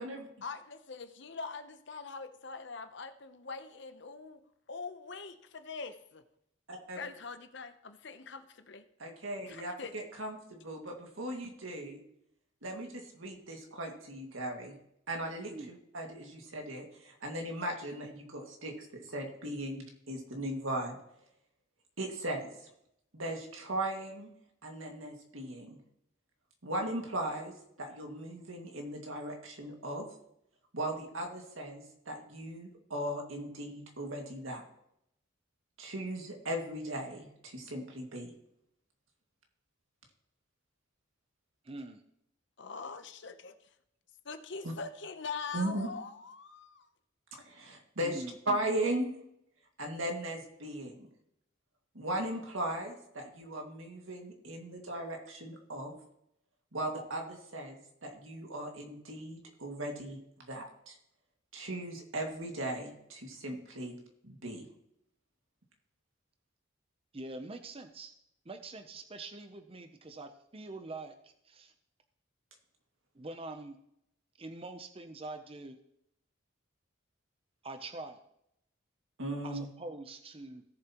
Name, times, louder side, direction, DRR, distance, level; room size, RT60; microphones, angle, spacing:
voice 1, 0.4-4.4 4.7-6.2 6.9-8.9 9.5-10.0 42.6-43.5 44.3-46.9, left 4 dB, 60° left, 9 dB, 0.8 m, -43 dB
voice 2, 6.7-7.0 9.0-12.0 12.6-14.7 15.1-15.5 15.9-21.0 22.0-22.5 23.1-24.3 24.6-25.8 26.6-27.5 27.8-30.1 30.7-34.6 35.8-38.3 45.5-45.9 47.4-49.1 49.8-51.1 51.9-55.9 56.7-60.2 60.5-60.9 61.5-64.0 64.2-64.7 79.2-79.7, right 1 dB, 85° right, 2 dB, 2.1 m, -38 dB
voice 3, 41.6-42.0 48.0-48.3 67.1-68.1 68.5-71.7 73.1-73.8 74.4-75.8 77.6-78.2 79.4-80.6, right 2 dB, 30° right, 8 dB, 0.6 m, -44 dB
17.0 x 7.2 x 3.0 m, 0.77 s
head